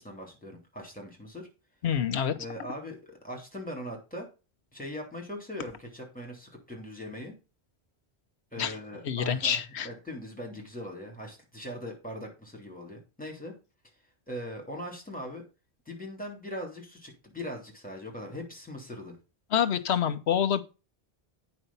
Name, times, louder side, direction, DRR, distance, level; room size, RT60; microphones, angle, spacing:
voice 1, 0.0-1.5 2.3-4.3 4.7-7.4 8.5-13.5 14.3-15.4 15.8-19.2, equal, 10° left, 3.2 m, -40 dB
voice 2, 1.8-2.3 8.6-8.7 9.0-9.9 19.5-20.6, left 8 dB, 85° left, 1.2 m, -27 dB
9.1 x 5.6 x 5.4 m
omnidirectional pair, 1.1 m